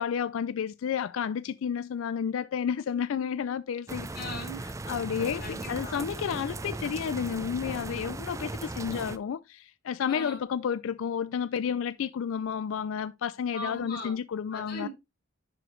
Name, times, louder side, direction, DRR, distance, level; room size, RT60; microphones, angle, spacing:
voice 1, 0.0-4.1 4.9-14.9, left 7 dB, 80° left, 0.4 m, -31 dB
sound 1, 3.9-9.2, right 2 dB, 15° right, 0.4 m, -37 dB
voice 2, 4.1-4.6 5.4-6.0 10.0-10.4 13.5-14.1 14.5-14.9, left 1 dB, 50° left, 4.1 m, -38 dB
11.0 x 5.0 x 3.1 m
head